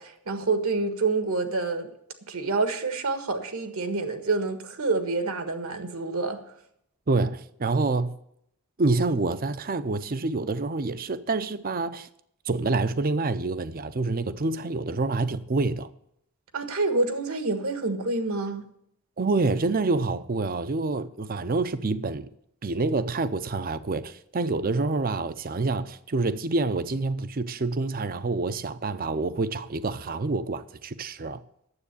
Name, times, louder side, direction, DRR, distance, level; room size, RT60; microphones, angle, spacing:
voice 1, 0.0-1.9 2.3-6.4 16.5-18.6, right 3 dB, 70° right, 1.5 m, -27 dB
voice 2, 7.1-8.2 8.8-12.1 12.5-15.9 19.2-22.3 22.6-31.4, right 3 dB, 40° right, 0.6 m, -27 dB
9.6 x 7.6 x 8.4 m
head